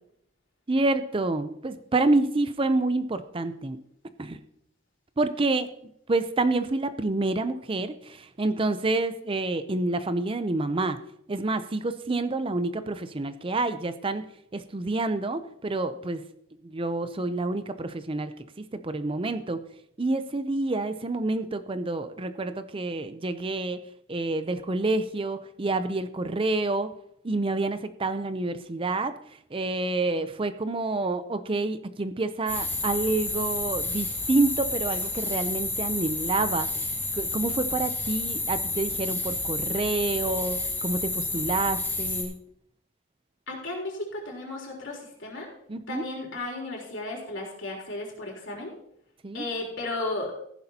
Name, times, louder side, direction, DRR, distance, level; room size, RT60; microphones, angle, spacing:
voice 1, 0.7-3.8 4.2-4.4 5.2-11.0 11.3-14.2 14.5-16.2 16.6-18.3 18.7-19.6 20.0-23.8 24.1-26.9 27.2-29.1 29.5-36.7 37.1-42.3 45.7-46.0 49.2-49.5, right 2 dB, 25° right, 11 dB, 0.5 m, -28 dB
sound 1, 32.5-42.2, left 2 dB, 10° left, 3.0 m, -30 dB
voice 2, 43.5-45.5 45.9-48.7 49.3-50.3, left 2 dB, 65° left, -1 dB, 3.6 m, -34 dB
14.5 x 11.0 x 2.8 m, 0.72 s
head